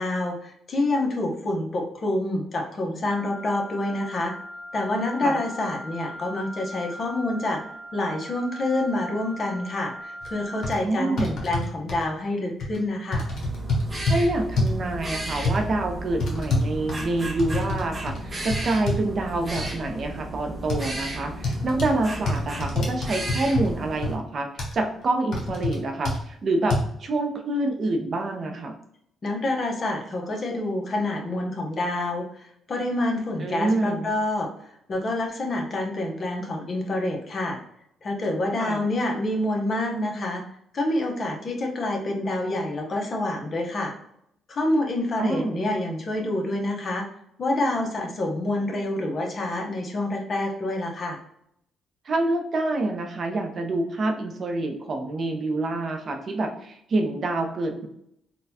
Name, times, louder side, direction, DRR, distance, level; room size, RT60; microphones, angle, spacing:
voice 1, 0.0-4.3 4.7-7.6 7.9-13.3 29.2-34.5 34.9-37.6 38.0-40.4 40.7-43.9 44.5-47.1 47.4-51.2, left 1 dB, 45° left, 1 dB, 0.8 m, -27 dB
Wind instrument woodwind instrument, 3.0-10.8, equal, 70° right, 1.0 m, -40 dB
sound 1, 10.2-10.3 10.6-10.7 11.2-12.0 12.6-12.8 13.1-14.2 14.6-14.8 15.4-15.6 16.2-17.8 18.1-18.2 18.5-19.0 19.6-19.7 20.7-20.9 21.4-21.9 22.3-23.7 24.0-24.1 24.6-24.7 25.3-25.8 26.0-26.2 26.7-26.8, left 2 dB, 60° left, 1.1 m, -26 dB
voice 2, 10.8-11.4 14.1-24.5 24.7-28.7 33.4-34.1 38.6-38.8 45.2-45.7 52.0-57.9, right 2 dB, 50° right, 4 dB, 0.6 m, -27 dB
sound 2, 13.3-24.2, right 1 dB, 30° right, 0.9 m, -34 dB
4.0 x 2.3 x 2.7 m, 0.73 s
cardioid pair, 90°, 0 cm